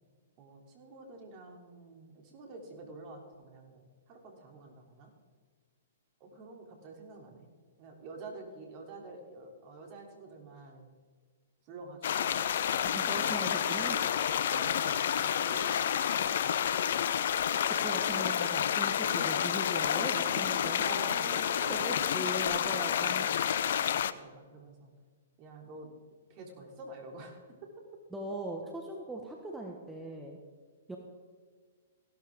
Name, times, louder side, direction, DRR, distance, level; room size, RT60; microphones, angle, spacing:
voice 1, 0.4-5.1 6.2-7.5 7.8-10.9 11.6-12.4 13.6-13.7 14.5-16.6 20.8-24.9 25.4-25.9 26.3-27.7, right 3 dB, 40° right, 2 dB, 3.2 m, -48 dB
sound 1, 12.0-24.1, left 9 dB, 60° left, 0.6 m, -29 dB
voice 2, 12.8-14.0 17.7-21.0 21.3-23.3 28.1-30.4 30.9-31.0, right 2 dB, 5° right, 0 dB, 1.5 m, -40 dB
sound 2, 12.9-19.4, left 2 dB, 15° left, 2.9 m, -50 dB
16.5 x 12.0 x 3.7 m, 1.6 s
figure-of-eight pair, 120°, 0 cm